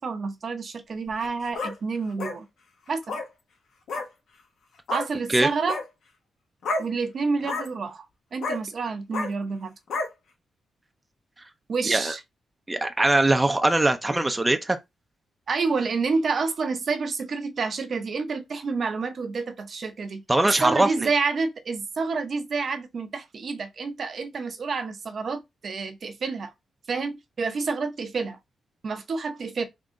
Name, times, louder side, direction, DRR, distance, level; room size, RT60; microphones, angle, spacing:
voice 1, 0.0-2.5 2.9-3.2 4.9-5.8 6.8-8.1 8.3-9.7 11.7-12.2 15.5-20.2 20.6-26.5 26.9-28.4 28.8-29.7, right 4 dB, 55° right, 0.7 m, -28 dB
sound 1, 1.1-1.7 2.2-2.3 3.0-3.3 3.9-4.0 4.9-5.1 5.5-5.8 6.6-6.9 7.4-7.7 8.4-8.6 9.1-9.3 9.9-10.1, left 3 dB, 80° left, 1.1 m, -29 dB
voice 2, 12.7-14.8 20.3-21.1, right 2 dB, 15° right, 0.5 m, -21 dB
3.8 x 2.7 x 3.7 m
cardioid pair, 85°, 0 cm